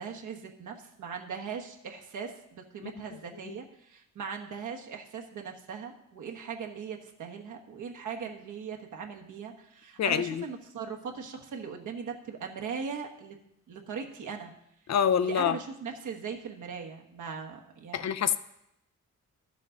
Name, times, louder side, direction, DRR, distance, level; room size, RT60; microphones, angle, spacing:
voice 1, 0.0-13.4 13.7-14.5 15.2-18.1, right 6 dB, 75° right, 2 dB, 1.2 m, -39 dB
voice 2, 10.0-10.4 14.9-15.6 17.9-18.4, left 8 dB, 60° left, 12 dB, 0.5 m, -26 dB
11.5 x 7.5 x 3.8 m, 0.81 s
cardioid pair, 85°, 31 cm